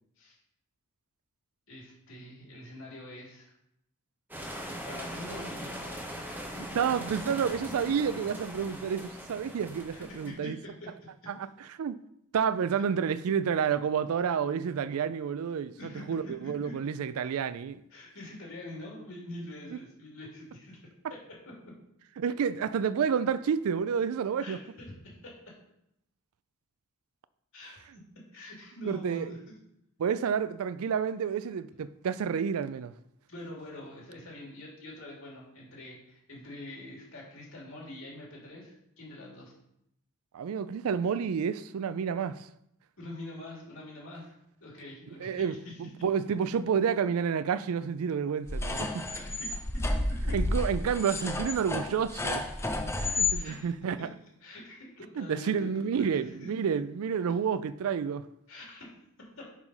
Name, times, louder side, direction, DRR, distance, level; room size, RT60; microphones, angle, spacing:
voice 1, 1.7-3.5 4.8-6.6 9.9-10.5 12.7-12.8 15.8-16.7 17.9-20.8 24.4-24.9 25.2-25.3 27.5-27.8 28.3-29.4 33.3-39.5 43.0-44.3 44.6-45.7 49.0-49.5 50.3-50.4 53.3-53.7 54.0-54.1 54.4-56.5 58.5-58.9, left 1 dB, 60° left, 2.6 m, -45 dB
sound 1, 4.3-10.3, equal, 10° right, 0.9 m, -41 dB
voice 2, 6.8-10.6 11.3-11.5 11.8-12.0 12.3-17.8 19.7-19.8 22.2-24.6 28.9-29.3 30.0-32.9 40.3-42.5 45.2-49.1 50.3-52.4 53.0-54.1 55.2-58.2, right 7 dB, 80° right, 0.3 m, -30 dB
sound 2, 48.5-53.4, left 2 dB, 10° left, 0.5 m, -31 dB
5.5 x 4.8 x 5.4 m
head